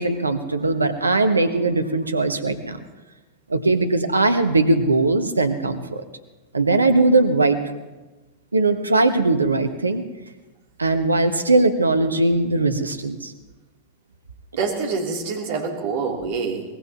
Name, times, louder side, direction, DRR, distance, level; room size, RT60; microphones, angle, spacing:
voice 1, 0.0-2.8 3.5-6.0 6.5-7.6 8.5-10.0 10.8-13.3, right 2 dB, 80° right, 8 dB, 1.1 m, -20 dB
voice 2, 14.6-16.6, right 5 dB, 50° right, 0 dB, 3.1 m, -26 dB
23.0 x 20.0 x 3.0 m, 1.2 s
figure-of-eight pair, 90°, 0 cm